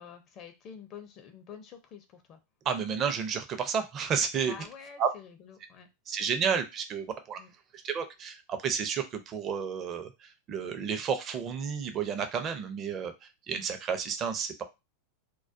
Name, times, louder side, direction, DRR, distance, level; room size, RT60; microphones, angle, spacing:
voice 1, 0.0-2.4 4.5-5.9 7.4-7.5, left 7 dB, 40° left, 7 dB, 0.5 m, -47 dB
voice 2, 2.6-4.5 5.0-5.1 6.1-7.4 7.7-14.6, right 6 dB, 35° right, 8 dB, 0.5 m, -31 dB
2.2 x 2.2 x 2.5 m, 0.25 s
hypercardioid pair, 110°, 0 cm